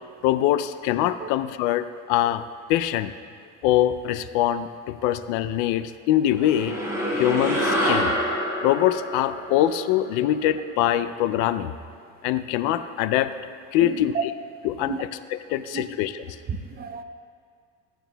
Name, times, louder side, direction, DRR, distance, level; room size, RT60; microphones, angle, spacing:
voice 1, 0.2-2.4 2.7-3.1 3.6-6.8 7.2-8.1 8.6-11.7 12.2-13.3 13.7-14.3 14.6-16.4, left 12 dB, 80° left, 12 dB, 0.5 m, -23 dB
sound 1, 6.3-11.0, equal, 10° right, 2.2 m, -27 dB
voice 2, 13.8-14.2 14.8-15.0 15.5-15.8 16.5-17.0, right 6 dB, 30° right, 9 dB, 0.6 m, -31 dB
15.5 x 9.2 x 2.3 m, 2.1 s
cardioid pair, 105°, 31 cm